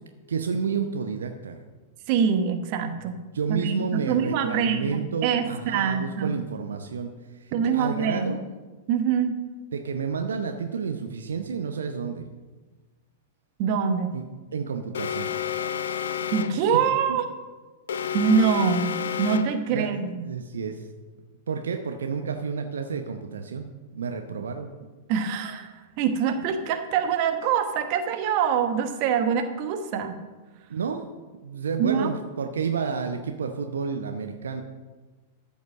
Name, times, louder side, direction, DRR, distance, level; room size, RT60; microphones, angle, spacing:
voice 1, 0.3-1.6 3.0-3.1 3.3-8.4 9.7-12.3 14.1-14.2 14.5-15.3 16.5-16.8 17.1-17.2 19.7-19.9 20.2-20.9 21.5-24.7 30.7-31.1 31.4-34.6, right 6 dB, 65° right, 5 dB, 0.8 m, -30 dB
voice 2, 2.1-3.2 3.5-6.3 7.5-8.3 8.9-9.4 13.6-14.2 16.3-17.2 18.1-20.2 25.1-30.2 31.8-32.1, right 7 dB, 45° right, 7 dB, 1.2 m, -24 dB
Alarm, 14.9-16.7 17.9-19.7, left 9 dB, 65° left, 0.6 m, -30 dB
13.5 x 5.3 x 6.4 m, 1.3 s
figure-of-eight pair, 95°, 0 cm